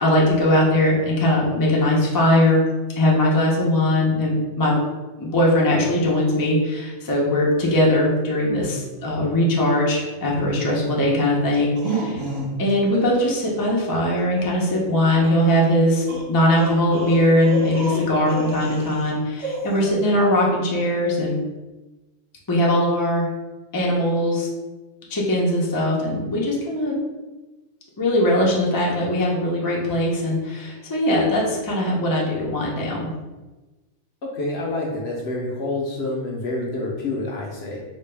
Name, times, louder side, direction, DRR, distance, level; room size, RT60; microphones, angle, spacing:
voice 1, 0.0-2.6 3.0-4.8 5.2-12.2 12.6-21.4 22.5-23.3 23.7-24.5 25.1-27.0 28.0-33.1, left 1 dB, 25° left, -4 dB, 0.4 m, -20 dB
sound 1, 11.5-12.7 13.1-13.3 15.2-15.3 16.1-19.1 19.4-19.9, right 2 dB, 30° right, 0.6 m, -29 dB
voice 2, 34.2-37.8, left 2 dB, 60° left, -2 dB, 0.8 m, -27 dB
3.9 x 2.2 x 3.3 m, 1.2 s
omnidirectional pair, 1.4 m